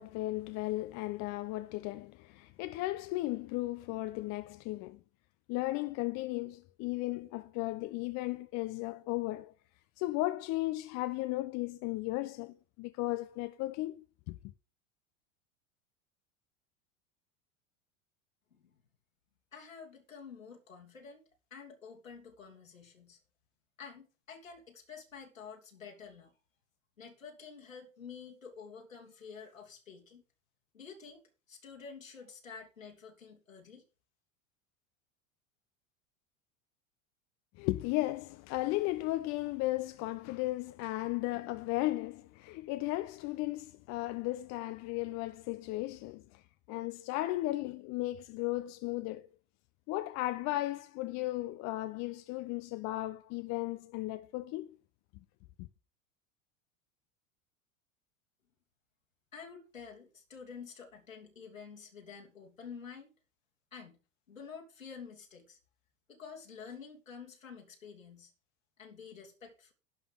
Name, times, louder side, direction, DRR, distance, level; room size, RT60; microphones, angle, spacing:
voice 1, 0.0-5.0 5.5-9.5 10.0-13.9 14.3-14.4 37.6-46.4 46.7-49.3 49.9-54.7 55.6-55.7, left 18 dB, 45° left, 0.9 m, -35 dB
voice 2, 19.5-21.2 21.5-23.2 23.8-26.3 27.0-30.2 30.7-33.8 59.3-63.1 63.7-64.0 64.3-65.6 66.1-68.3 68.8-69.7, left 6 dB, 85° left, 3.1 m, -49 dB
11.5 x 5.6 x 6.5 m
figure-of-eight pair, 80°, 39 cm